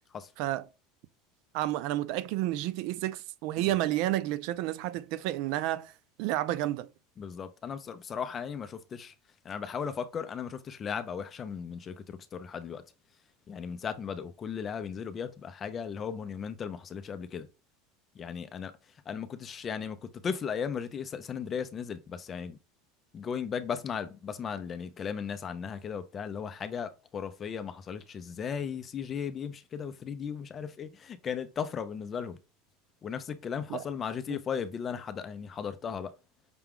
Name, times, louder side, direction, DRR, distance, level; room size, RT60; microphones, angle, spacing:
voice 1, 1.5-5.9 6.2-6.9 33.7-33.8 34.3-34.4, right 14 dB, 55° right, 0.3 m, -30 dB
voice 2, 7.2-9.1 9.4-12.8 13.5-17.5 18.1-18.7 19.1-22.6 23.1-32.4 33.0-36.1, left 7 dB, 25° left, 0.5 m, -36 dB
5.9 x 2.3 x 3.6 m
supercardioid pair, 160°, 0 cm